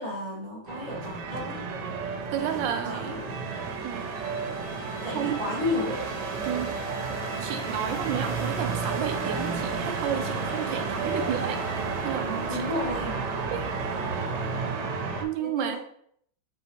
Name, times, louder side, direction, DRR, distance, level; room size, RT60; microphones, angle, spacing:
voice 1, 0.0-1.7 2.4-3.3 5.0-6.0 12.5-13.2 15.4-15.8, left 2 dB, 20° left, -6 dB, 0.7 m, -33 dB
sound 1, 0.7-15.2, right 4 dB, 70° right, 1.1 m, -31 dB
voice 2, 2.3-3.2 3.8-4.1 5.1-5.4 6.4-6.8 7.4-12.9 13.3-13.7 15.2-15.8, right 9 dB, 90° right, 7 dB, 1.3 m, -32 dB
Bowed string instrument, 4.0-12.4, left 2 dB, 90° left, 1.8 m, -44 dB
4.0 x 2.8 x 4.1 m, 0.66 s
omnidirectional pair, 2.0 m